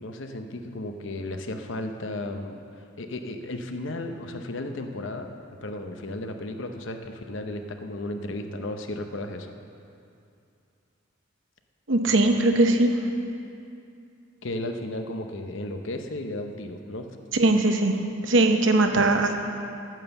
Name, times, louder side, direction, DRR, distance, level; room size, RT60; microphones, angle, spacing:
voice 1, 0.0-2.6 3.0-5.3 5.6-9.6 14.4-17.1 19.0-19.1, left 1 dB, 60° left, 6 dB, 0.8 m, -34 dB
voice 2, 11.9-12.9 17.3-18.0 18.2-19.3, right 2 dB, 60° right, 5 dB, 0.9 m, -20 dB
9.1 x 9.0 x 7.0 m, 2.5 s
head